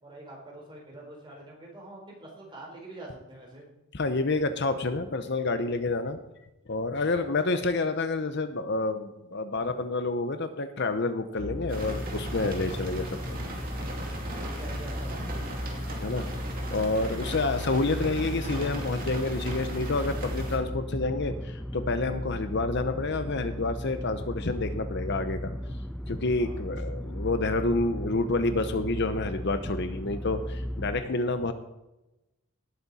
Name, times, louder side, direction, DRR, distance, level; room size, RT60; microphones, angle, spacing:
voice 1, 0.0-3.7 14.2-15.4 26.4-26.8, right 1 dB, 20° right, -2 dB, 4.4 m, -45 dB
voice 2, 3.9-6.2 6.7-13.1 16.0-16.3 16.7-25.6 26.1-31.5, left 3 dB, 50° left, 9 dB, 0.8 m, -28 dB
sound 1, 11.4-31.0, equal, 5° left, 0.3 m, -35 dB
sound 2, 11.7-20.6, right 1 dB, 40° right, 2.6 m, -38 dB
18.5 x 8.5 x 4.2 m, 0.97 s
head